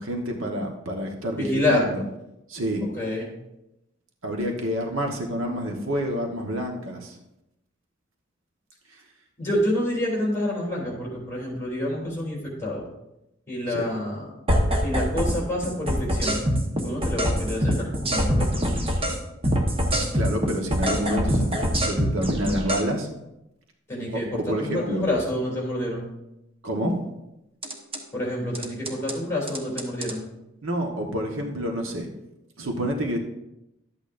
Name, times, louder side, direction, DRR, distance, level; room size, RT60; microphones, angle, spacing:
voice 1, 0.0-2.0 2.5-2.9 4.2-7.2 13.7-13.8 20.1-23.1 24.5-25.0 26.6-27.0 30.6-32.1 32.6-33.2, equal, 75° right, 2 dB, 1.2 m, -28 dB
voice 2, 1.4-1.9 2.9-3.3 9.4-12.8 13.5-14.3 14.8-16.4 16.8-18.6 23.9-26.1 28.1-30.3, left 1 dB, 10° left, -3 dB, 3.1 m, -28 dB
sound 1, 14.5-15.4 15.6-19.2 19.4-22.8 27.6-28.0 28.5-29.1 29.5-30.1, equal, 30° right, 1.1 m, -24 dB
12.0 x 8.6 x 2.6 m, 0.89 s
head